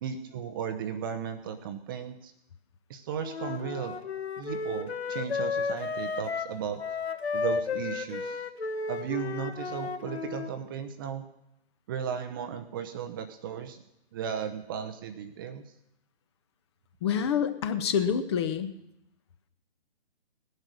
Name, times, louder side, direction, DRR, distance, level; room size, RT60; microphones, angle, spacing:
voice 1, 0.0-2.3 2.9-4.0 4.4-6.8 7.3-8.5 8.9-11.2 11.9-13.8 14.1-15.6, right 8 dB, 20° right, 8 dB, 0.7 m, -35 dB
Wind instrument woodwind instrument, 3.2-10.5, left 5 dB, 75° left, 1.5 m, -33 dB
voice 2, 17.0-18.7, left 8 dB, 25° left, 11 dB, 0.9 m, -27 dB
18.5 x 11.0 x 6.4 m, 0.83 s
figure-of-eight pair, 145°, 32 cm